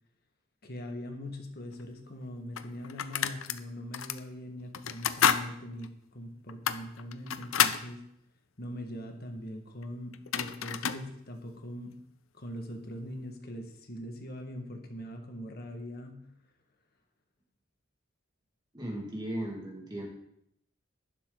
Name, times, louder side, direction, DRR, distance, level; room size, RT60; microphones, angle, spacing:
voice 1, 0.6-5.9 6.1-8.0 8.6-12.0 12.3-16.2, equal, 50° left, 3 dB, 1.7 m, -41 dB
sound 1, 1.8-1.9 2.6-3.6 3.9-4.2 4.7-5.4 5.8-5.9 6.5-7.8 9.8-9.9 10.1-11.0, left 8 dB, 85° left, 0.7 m, -29 dB
voice 2, 18.7-20.1, right 1 dB, 20° right, -1 dB, 2.1 m, -36 dB
11.5 x 11.5 x 4.0 m, 0.74 s
head